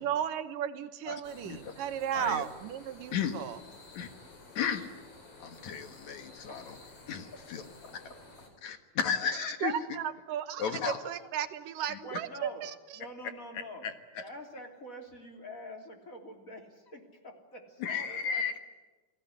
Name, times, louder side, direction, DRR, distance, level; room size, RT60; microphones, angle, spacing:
voice 1, 0.0-3.6 9.6-12.7, right 10 dB, 90° right, 10 dB, 2.8 m, -35 dB
sound 1, 1.2-8.5, left 3 dB, 45° left, 5.3 m, -52 dB
voice 2, 4.6-4.9 5.4-6.7 7.1-7.6 8.6-9.8 10.6-11.0 11.9-12.0 13.8-14.2 17.8-18.6, left 7 dB, 65° left, 8 dB, 2.7 m, -34 dB
voice 3, 6.5-7.1 7.3-8.2 10.7-11.3 12.0-12.6 12.9-13.9 14.2-18.6, equal, 25° left, 3 dB, 3.3 m, -47 dB
29.5 x 19.0 x 9.9 m, 1.2 s
omnidirectional pair, 3.8 m